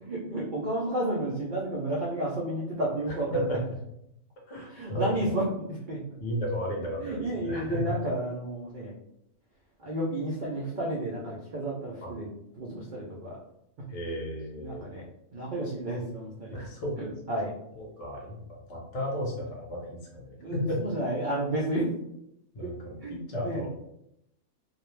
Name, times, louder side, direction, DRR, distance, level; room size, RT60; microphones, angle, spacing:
voice 1, 0.0-3.6 4.7-5.4 5.9-6.0 7.0-8.9 9.8-12.3 12.6-13.4 14.6-15.1 15.3-16.5 17.0-17.5 20.4-21.9 22.6-22.7 23.0-23.6, right 1 dB, 80° right, -4 dB, 0.4 m, -31 dB
voice 2, 3.1-3.6 4.5-5.3 6.2-7.9 12.0-12.1 13.9-14.8 16.5-16.9 17.7-20.8 22.5-23.7, equal, 40° left, -1 dB, 0.5 m, -34 dB
2.4 x 2.0 x 3.1 m, 0.80 s
omnidirectional pair, 1.4 m